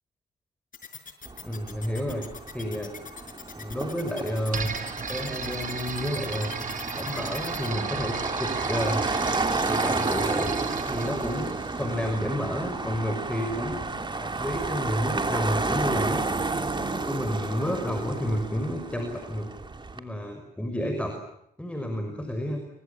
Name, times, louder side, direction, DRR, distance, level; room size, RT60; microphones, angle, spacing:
sound 1, 0.7-7.7, left 6 dB, 40° left, 5.7 m, -42 dB
Motor vehicle (road), 1.2-20.0, right 3 dB, 25° right, 3.0 m, -31 dB
voice 1, 1.4-2.3 2.5-2.9 3.6-4.7 5.1-6.5 6.9-9.0 9.6-10.5 10.9-13.8 14.2-16.3 16.8-19.5 19.9-21.2 21.6-22.6, equal, 5° left, 5 dB, 6.1 m, -30 dB
sound 2, 4.5-12.3, right 6 dB, 45° right, 3.8 m, -36 dB
28.5 x 25.0 x 7.2 m, 0.77 s
cardioid pair, 90°, 20 cm